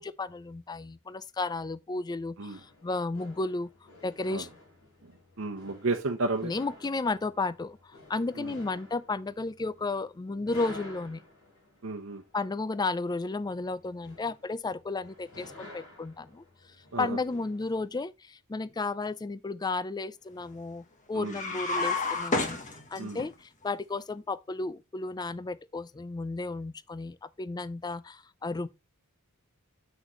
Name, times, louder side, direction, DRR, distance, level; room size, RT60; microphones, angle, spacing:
voice 1, 0.0-3.7 4.0-4.5 6.4-11.2 12.3-16.4 17.0-22.6 22.9-28.7, left 3 dB, 20° left, 0.4 m, -33 dB
sound 1, 2.5-17.9, left 1 dB, 85° left, 4.7 m, -52 dB
voice 2, 5.4-6.5 8.4-8.5 11.8-12.2 16.9-17.1 21.1-21.3 23.0-23.2, right 3 dB, 65° right, 0.9 m, -32 dB
sound 2, 21.3-23.3, left 3 dB, 35° left, 1.5 m, -30 dB
8.1 x 6.3 x 3.1 m
head